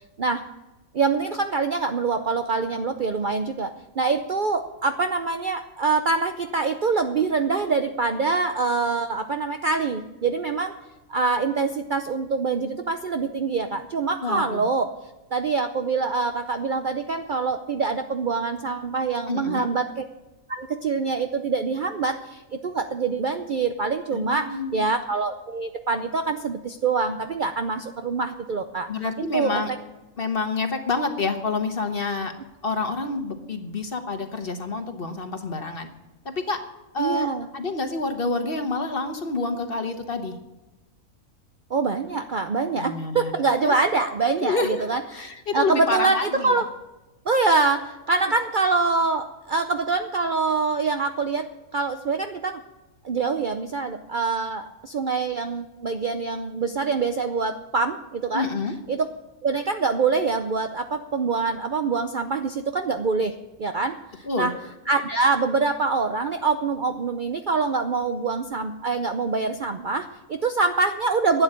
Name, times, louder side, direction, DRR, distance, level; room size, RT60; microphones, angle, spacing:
voice 1, 0.9-10.7 11.1-14.9 15.3-20.0 20.5-28.9 29.2-29.8 37.0-37.5 41.7-45.3 45.5-46.7 47.3-52.6 53.0-59.1 59.4-71.4, right 4 dB, 50° right, 7 dB, 0.6 m, -25 dB
voice 2, 14.2-14.6 19.3-19.7 24.1-24.8 28.9-29.7 30.2-32.3 32.6-35.9 36.2-36.6 36.9-40.4 42.8-43.3 43.6-43.8 44.4-44.9 45.1-46.6 58.3-58.7 64.2-64.5, left 3 dB, 40° left, 6 dB, 1.4 m, -28 dB
11.5 x 8.8 x 8.8 m, 1.1 s
omnidirectional pair, 1.5 m